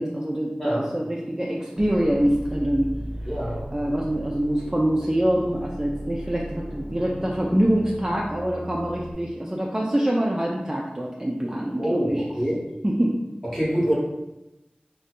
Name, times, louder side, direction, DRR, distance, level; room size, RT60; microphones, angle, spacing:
voice 1, 0.0-2.9 3.7-12.2 12.8-13.1, right 1 dB, 20° right, -3 dB, 0.4 m, -25 dB
sound 1, 1.8-9.1, right 1 dB, 90° right, 0.5 m, -36 dB
voice 2, 3.3-3.7 11.8-12.6 13.5-13.9, equal, 10° left, -6 dB, 0.9 m, -25 dB
2.6 x 2.2 x 3.6 m, 0.94 s
wide cardioid pair, 45°, 3 cm